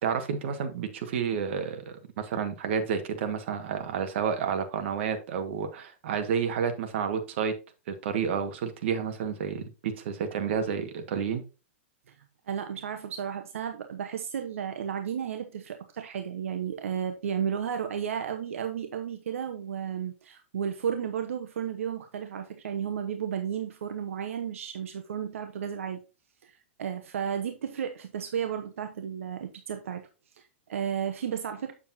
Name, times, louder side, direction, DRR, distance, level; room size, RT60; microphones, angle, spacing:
voice 1, 0.0-7.5 7.9-11.4, right 7 dB, 65° right, 1.5 m, -30 dB
voice 2, 12.5-26.0 26.4-30.0 30.3-31.7, right 8 dB, 85° right, 0.9 m, -33 dB
7.5 x 7.0 x 2.7 m
hypercardioid pair, 145°, 7 cm